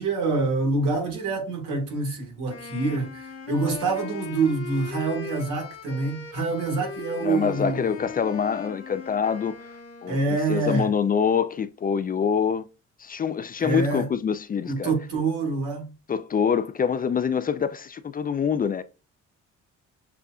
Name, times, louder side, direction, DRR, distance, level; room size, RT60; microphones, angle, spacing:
voice 1, 0.0-8.0 10.1-10.9 13.6-14.1 14.6-15.9, right 3 dB, 85° right, 1.8 m, -26 dB
Wind instrument woodwind instrument, 2.5-10.6, left 5 dB, 50° left, 1.0 m, -39 dB
voice 2, 7.2-9.7 10.0-10.2 10.5-12.7 13.0-14.9 16.1-18.8, left 7 dB, 30° left, 0.3 m, -25 dB
6.8 x 2.4 x 2.3 m
cardioid pair, 90°, 30 cm